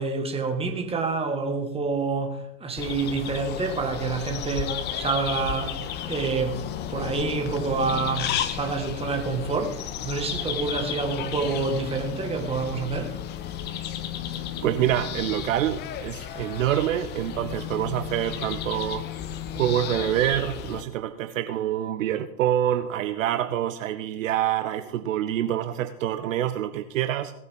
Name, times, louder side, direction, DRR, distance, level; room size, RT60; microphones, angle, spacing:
voice 1, 0.0-6.6 6.9-13.1, right 4 dB, 10° right, 1.8 m, -28 dB
sound 1, 2.8-20.8, left 10 dB, 20° left, 0.8 m, -33 dB
voice 2, 14.6-19.0 19.5-27.3, right 11 dB, 55° right, 0.9 m, -26 dB
18.5 x 8.6 x 3.7 m
hypercardioid pair, 110°, 47 cm